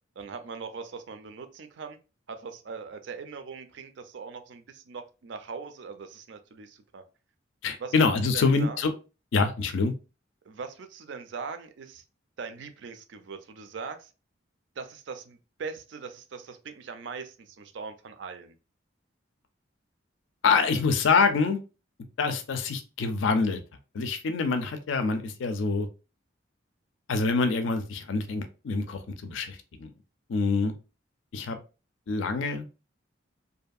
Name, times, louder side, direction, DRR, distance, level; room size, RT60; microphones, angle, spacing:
voice 1, 0.2-2.0 2.3-7.0 7.8-7.9 8.3-8.8 10.4-12.0 12.4-14.1 14.8-18.6, right 5 dB, 65° right, 0.4 m, -41 dB
voice 2, 7.6-8.9 9.3-9.9 20.4-21.6 22.2-23.6 23.9-25.9 27.1-29.9 30.3-30.7 31.3-31.6 32.1-32.7, left 4 dB, 75° left, 0.4 m, -25 dB
2.7 x 2.5 x 2.3 m
head